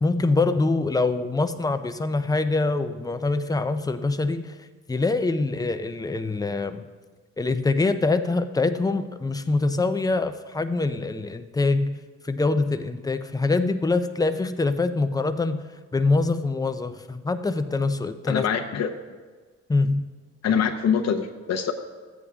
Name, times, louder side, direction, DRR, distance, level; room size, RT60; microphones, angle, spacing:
voice 1, 0.0-4.5 4.9-6.9 7.4-12.0 12.2-15.6 15.9-18.4 19.7-20.1, left 3 dB, 10° left, 9 dB, 0.6 m, -24 dB
voice 2, 18.3-18.9 20.4-21.7, left 7 dB, 60° left, 6 dB, 0.9 m, -24 dB
13.0 x 8.7 x 3.7 m, 1.4 s
cardioid pair, 90°, 30 cm